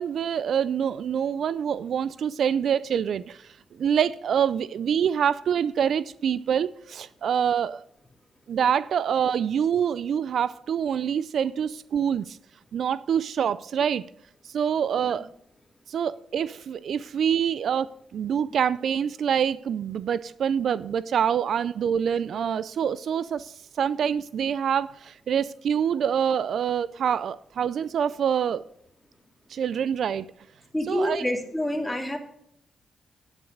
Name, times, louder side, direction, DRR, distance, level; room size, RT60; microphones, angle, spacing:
voice 1, 0.0-7.8 8.5-12.4 12.7-14.0 14.5-15.3 15.9-28.6 29.5-30.3 30.8-31.3, right 8 dB, 70° right, 0.4 m, -26 dB
voice 2, 30.7-32.2, left 1 dB, 10° left, 2.5 m, -27 dB
9.5 x 8.1 x 6.6 m
cardioid pair, 75°, 0 cm